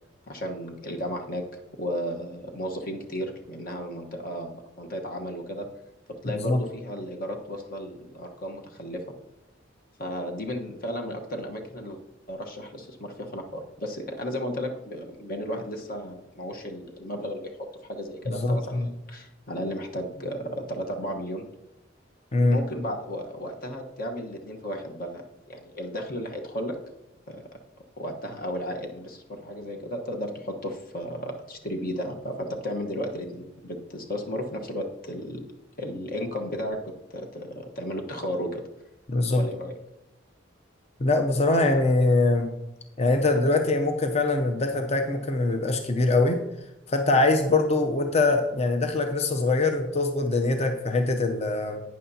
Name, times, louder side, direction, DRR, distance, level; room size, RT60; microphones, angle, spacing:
voice 1, 0.3-1.4 1.8-5.7 6.2-9.0 10.0-12.0 12.3-21.4 22.5-25.2 25.5-26.8 27.3-27.4 28.0-35.4 35.8-38.6 39.3-39.7, equal, 50° left, 2 dB, 1.2 m, -34 dB
voice 2, 18.3-18.9 22.3-22.6 39.1-39.4 41.0-42.5 43.0-46.4 46.9-51.8, left 2 dB, 35° left, 5 dB, 0.6 m, -23 dB
11.5 x 9.3 x 2.8 m, 0.94 s
head